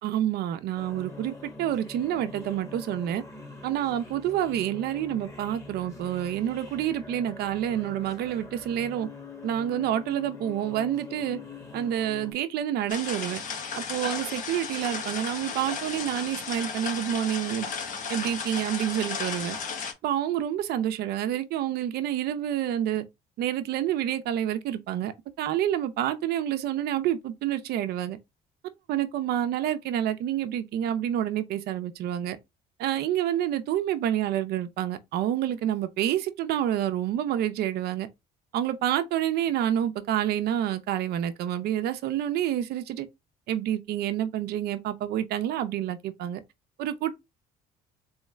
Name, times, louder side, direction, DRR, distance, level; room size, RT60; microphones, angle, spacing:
voice 1, 0.0-3.2 3.6-9.1 9.4-11.4 11.7-13.4 13.8-17.7 18.1-19.6 20.0-23.0 23.4-28.2 28.9-32.4 32.8-38.1 38.5-43.1 43.5-46.4 46.8-47.1, right 11 dB, 70° right, 0.6 m, -28 dB
sound 1, 0.8-12.3, left 4 dB, 20° left, 1.1 m, -44 dB
sound 2, 12.9-19.9, left 5 dB, 50° left, 1.0 m, -34 dB
3.6 x 3.1 x 3.2 m
cardioid pair, 110°, 17 cm